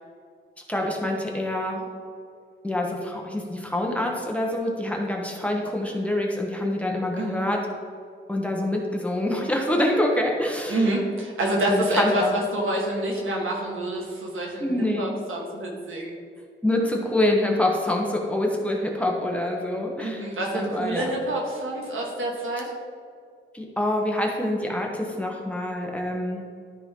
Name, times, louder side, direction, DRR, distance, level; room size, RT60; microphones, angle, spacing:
voice 1, 0.7-1.9 2.6-7.6 8.3-10.9 11.6-12.4 14.6-15.1 16.6-20.2 20.5-21.1 23.5-26.5, left 1 dB, 5° left, -1 dB, 1.1 m, -26 dB
voice 2, 10.7-16.1 20.0-22.7, right 1 dB, 90° right, -1 dB, 1.8 m, -27 dB
12.5 x 4.4 x 3.8 m, 2.2 s
wide cardioid pair, 145°, 20 cm